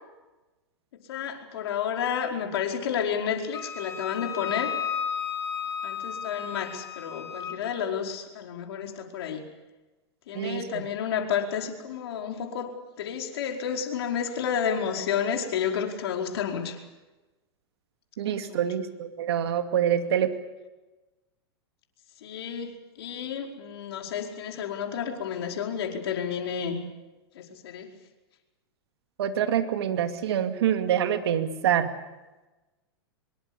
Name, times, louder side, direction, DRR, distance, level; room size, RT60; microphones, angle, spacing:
voice 1, 0.9-4.7 5.8-9.4 10.3-16.8 18.3-18.7 22.2-26.8 27.3-27.9, left 8 dB, 65° left, 2 dB, 5.0 m, -31 dB
Wind instrument woodwind instrument, 3.5-7.6, left 7 dB, 20° left, 5.6 m, -33 dB
voice 2, 18.2-20.3 29.2-31.9, right 9 dB, 70° right, 7 dB, 2.4 m, -26 dB
25.0 x 23.0 x 7.1 m, 1.1 s
hypercardioid pair, 115°, 14 cm